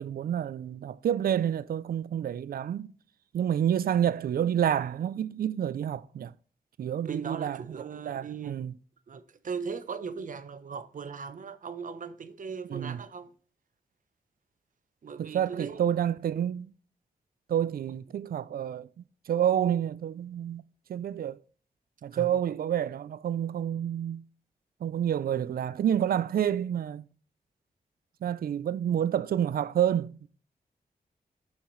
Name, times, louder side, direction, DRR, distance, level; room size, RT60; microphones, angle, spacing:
voice 1, 0.0-2.9 3.3-6.3 6.8-7.8 8.0-8.7 12.7-13.0 15.2-16.7 17.5-20.6 20.9-21.4 22.0-24.2 24.8-27.1 28.2-30.3, right 10 dB, 75° right, 0.4 m, -29 dB
voice 2, 7.0-8.5 9.1-13.3 15.0-15.8 22.1-22.4, right 6 dB, 60° right, 0.8 m, -38 dB
7.0 x 5.7 x 3.1 m
wide cardioid pair, 110°, 15 cm